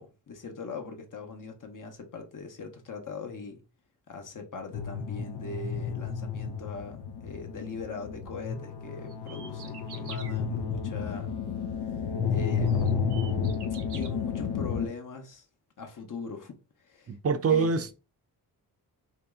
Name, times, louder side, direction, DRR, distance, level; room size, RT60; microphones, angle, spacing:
voice 1, 0.0-3.6 4.1-11.4 12.3-13.1 13.9-15.5 15.8-17.2 17.5-17.7, left 4 dB, 50° left, 0.9 m, -40 dB
sound 1, 4.7-14.9, left 6 dB, 85° left, 0.7 m, -31 dB
sound 2, 9.1-10.3 12.0-12.1 12.7-14.1, right 6 dB, 80° right, 0.7 m, -46 dB
voice 2, 17.1-17.9, right 5 dB, 40° right, 0.5 m, -25 dB
3.0 x 2.8 x 3.5 m
wide cardioid pair, 95°, 39 cm